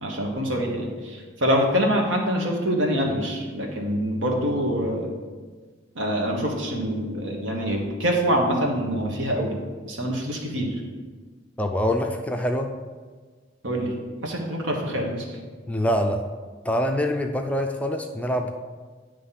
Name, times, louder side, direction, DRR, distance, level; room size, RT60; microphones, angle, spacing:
voice 1, 0.0-5.2 5.9-10.8 13.6-13.9 14.2-15.4, equal, 80° right, 0 dB, 1.3 m, -25 dB
voice 2, 11.6-12.7 15.7-16.2 16.6-18.5, equal, 5° left, 3 dB, 0.4 m, -24 dB
9.6 x 3.2 x 5.7 m, 1.4 s
head